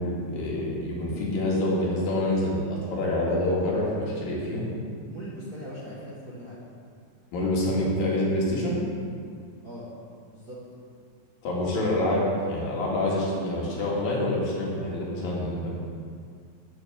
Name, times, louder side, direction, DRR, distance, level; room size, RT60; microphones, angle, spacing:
voice 1, 0.0-4.7 7.3-8.8 11.4-15.7, left 1 dB, 90° left, -4 dB, 3.9 m, -26 dB
voice 2, 5.1-6.6 9.6-9.9 10.3-10.6, equal, 40° right, -8 dB, 1.4 m, -40 dB
14.0 x 8.7 x 3.7 m, 2.2 s
omnidirectional pair, 3.9 m